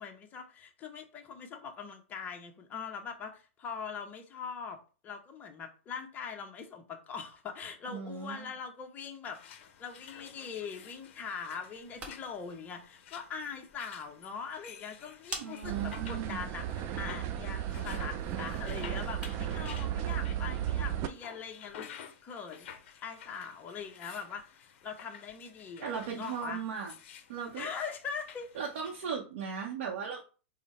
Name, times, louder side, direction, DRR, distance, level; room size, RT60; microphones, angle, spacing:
voice 1, 0.0-4.8 5.0-9.4 9.8-22.7 23.0-26.6 27.6-28.5, left 6 dB, 25° left, 3 dB, 0.7 m, -42 dB
voice 2, 7.9-8.5 15.4-16.4 25.8-26.9 27.3-27.7 28.6-30.2, right 7 dB, 70° right, -1 dB, 0.7 m, -37 dB
sound 1, 9.2-29.2, left 8 dB, 60° left, 0.6 m, -52 dB
sound 2, 11.7-19.7, right 2 dB, 20° right, 0.9 m, -50 dB
sound 3, 15.6-21.1, right 11 dB, 35° right, 0.4 m, -35 dB
3.8 x 2.1 x 4.1 m, 0.36 s
hypercardioid pair, 130°, 7 cm